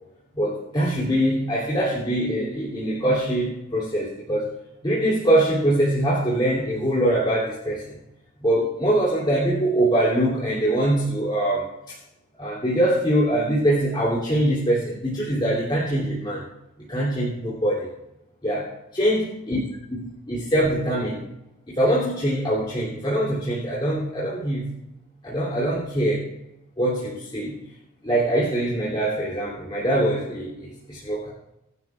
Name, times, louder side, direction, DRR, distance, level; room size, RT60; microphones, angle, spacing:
voice 1, 0.3-4.5 4.8-8.0 8.4-12.0 12.4-16.4 16.9-17.9 18.4-18.7 18.9-19.6 19.9-21.2 21.7-24.7 25.2-26.3 26.8-27.6 28.0-31.3, right 1 dB, 20° left, -6 dB, 2.9 m, -23 dB
21.0 x 12.0 x 2.4 m, 0.87 s
head